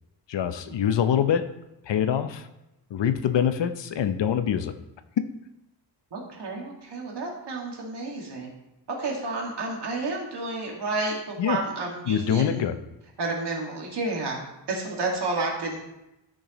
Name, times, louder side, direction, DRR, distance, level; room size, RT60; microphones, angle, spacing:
voice 1, 0.3-1.5 1.8-2.5 2.9-4.7 11.4-11.6 12.1-12.8, left 9 dB, 85° left, 10 dB, 0.7 m, -24 dB
voice 2, 6.1-8.5 8.9-12.6 13.2-14.4 14.7-15.8, right 3 dB, 70° right, -1 dB, 2.1 m, -31 dB
12.5 x 6.3 x 3.1 m, 0.91 s
wide cardioid pair, 140°, 42 cm